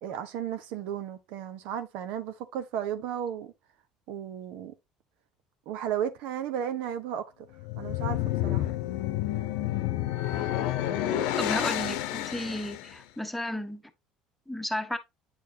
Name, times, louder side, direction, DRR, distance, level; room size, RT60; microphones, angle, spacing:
voice 1, 0.0-3.5 4.1-4.7 5.7-7.5 7.8-8.7, right 9 dB, 75° right, 0.9 m, -34 dB
sound 1, 7.5-12.9, left 13 dB, 80° left, 0.8 m, -29 dB
voice 2, 11.4-13.8 14.5-15.0, left 1 dB, 5° left, 1.2 m, -33 dB
8.9 x 4.7 x 2.8 m
supercardioid pair, 80°, 2 cm